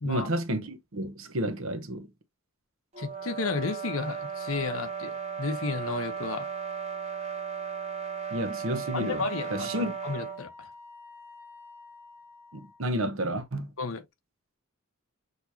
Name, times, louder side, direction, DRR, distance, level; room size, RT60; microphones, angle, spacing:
voice 1, 0.0-2.1 8.3-9.9 12.5-13.7, right 1 dB, 70° right, 0.9 m, -31 dB
sound 1, 2.9-10.4, right 6 dB, 30° right, 1.3 m, -36 dB
voice 2, 3.0-6.5 8.9-10.7 13.8-14.0, left 4 dB, 70° left, 0.9 m, -33 dB
Wind instrument woodwind instrument, 9.1-13.0, left 3 dB, 10° right, 1.0 m, -51 dB
6.5 x 3.0 x 2.8 m
head